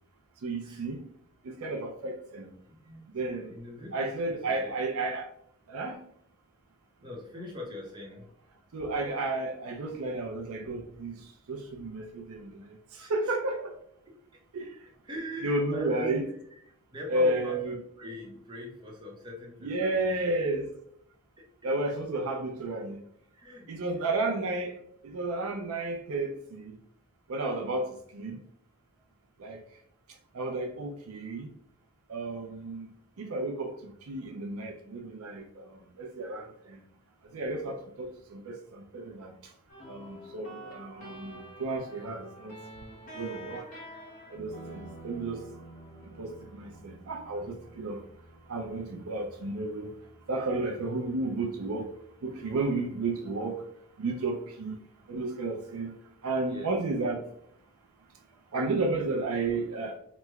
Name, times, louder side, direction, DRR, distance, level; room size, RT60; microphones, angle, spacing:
voice 1, 0.4-1.0 1.4-2.5 3.1-3.5 3.9-5.3 5.7-6.0 8.7-11.2 11.5-12.6 12.9-13.7 14.5-14.7 15.4-16.2 17.1-17.8 19.6-20.7 21.6-23.0 23.7-24.8 25.0-26.7 27.3-28.4 29.4-29.6 30.3-31.5 32.1-32.9 33.2-36.8 37.3-39.3 39.9-42.5 43.1-43.7 44.3-45.4 46.2-48.0 48.5-49.9 50.3-51.9 52.2-53.5 54.0-54.7 55.1-55.9 56.2-57.2 58.5-60.0, right 2 dB, 70° right, 0.5 m, -32 dB
voice 2, 2.6-3.0 3.4-4.7 7.0-8.3 12.9-13.1 15.0-16.1 16.5-16.6 16.9-20.3 23.3-24.4 37.6-37.8 56.5-56.7, left 1 dB, 20° right, 0.7 m, -41 dB
sound 1, 39.7-53.2, right 1 dB, 35° left, 0.9 m, -49 dB
3.0 x 2.1 x 3.4 m
head